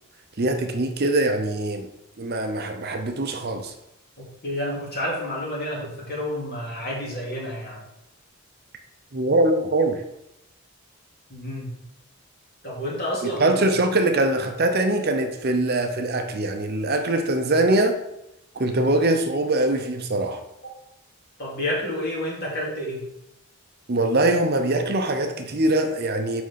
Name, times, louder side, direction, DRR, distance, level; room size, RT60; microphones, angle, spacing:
voice 1, 0.4-1.9 2.2-3.7 9.1-10.0 13.2-18.0 18.5-20.4 23.9-26.4, right 2 dB, 45° right, 0.7 m, -22 dB
voice 2, 4.2-7.8 11.3-11.7 12.6-13.6 20.6-20.7 21.4-23.0, left 1 dB, 45° left, 2.5 m, -30 dB
5.9 x 5.2 x 5.7 m
head